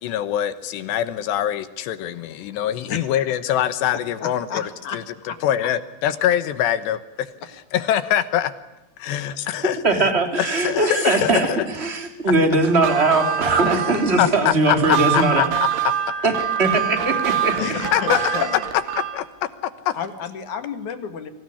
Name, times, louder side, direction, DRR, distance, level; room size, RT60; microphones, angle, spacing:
voice 1, 0.0-4.6 4.9-5.0 5.4-7.3 7.7-8.5 9.0-10.1 10.4-11.7 14.2-15.5 15.8-15.9 17.6-18.4 19.0-19.2 19.6-19.9, left 11 dB, 70° left, 13 dB, 3.0 m, -23 dB
voice 2, 4.2-5.4 5.6-5.7 9.1-9.3 17.6-18.7 19.9-21.3, left 7 dB, 50° left, 9 dB, 2.5 m, -31 dB
voice 3, 9.8-15.4 16.2-16.3 16.6-17.6, right 2 dB, 15° right, 6 dB, 2.5 m, -20 dB
sound 1, 12.7-19.2, right 9 dB, 80° right, 5.0 m, -25 dB
25.5 x 18.5 x 9.9 m, 1.0 s
omnidirectional pair, 5.6 m